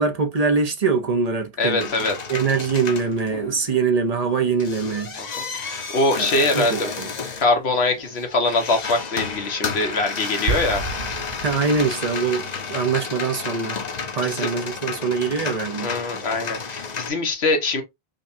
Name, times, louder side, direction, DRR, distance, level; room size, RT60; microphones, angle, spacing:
voice 1, 0.0-1.9 2.3-5.1 6.2-7.1 11.4-13.8 14.2-15.9, right 5 dB, 40° right, 0.7 m, -23 dB
voice 2, 1.6-2.2 5.2-6.9 7.4-10.8 12.5-12.6 13.9-14.5 15.8-17.8, left 2 dB, 80° left, 1.3 m, -23 dB
sound 1, 1.8-3.8 4.3-17.1, left 5 dB, 45° left, 0.8 m, -32 dB
sound 2, 10.5-12.1, right 4 dB, 75° right, 0.9 m, -29 dB
5.1 x 2.3 x 2.6 m
omnidirectional pair, 1.1 m